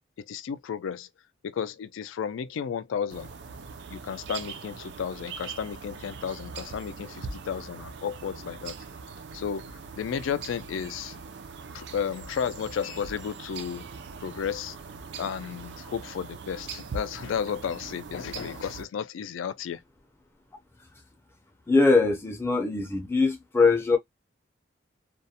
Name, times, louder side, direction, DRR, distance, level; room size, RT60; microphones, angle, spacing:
voice 1, 0.2-1.1 1.4-3.3 3.9-8.8 9.3-11.2 11.7-13.9 14.2-14.8 15.2-19.8, left 7 dB, 85° left, 0.3 m, -33 dB
sound 1, 3.1-18.9, right 5 dB, 65° right, 0.3 m, -41 dB
voice 2, 21.7-24.0, left 3 dB, 10° left, 0.4 m, -22 dB
2.4 x 2.0 x 2.7 m
head